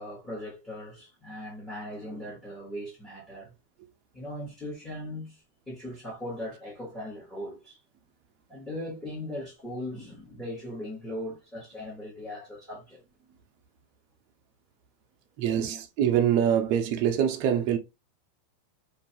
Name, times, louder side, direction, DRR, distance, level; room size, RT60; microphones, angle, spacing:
voice 1, 0.0-3.5 4.1-7.8 8.5-13.0 15.5-15.8, left 1 dB, 10° left, 1.0 m, -39 dB
voice 2, 15.4-17.8, right 9 dB, 45° right, 0.5 m, -24 dB
2.5 x 2.3 x 2.7 m
supercardioid pair, 160°, 0 cm